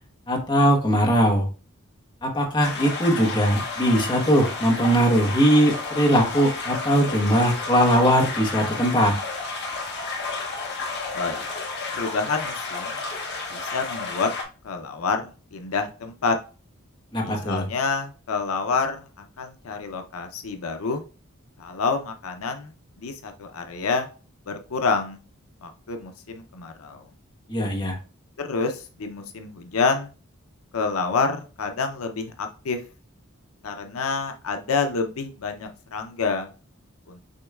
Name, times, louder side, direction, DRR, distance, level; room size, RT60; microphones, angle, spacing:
voice 1, 0.3-1.5 2.2-9.1 17.1-17.6 27.5-28.0, equal, 20° left, -1 dB, 1.0 m, -20 dB
sound 1, 2.6-14.4, left 3 dB, 50° left, 0.9 m, -32 dB
voice 2, 11.1-11.5 11.9-13.0 13.5-14.3 14.6-16.4 17.2-19.0 19.4-21.0 21.6-24.1 24.5-25.2 25.6-27.0 28.4-30.1 30.7-32.8 33.6-36.5 37.1-37.2, left 4 dB, 85° left, 6 dB, 0.6 m, -28 dB
6.5 x 3.1 x 2.3 m, 0.35 s
head